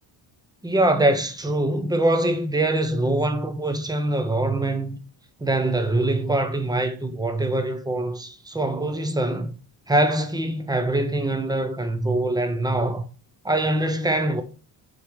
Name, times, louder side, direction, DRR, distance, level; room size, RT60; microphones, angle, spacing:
voice 1, 0.6-5.0 5.4-9.6 9.9-13.0 13.4-14.4, right 1 dB, 10° right, 0.4 m, -23 dB
6.5 x 3.3 x 4.5 m
cardioid pair, 165°, 46 cm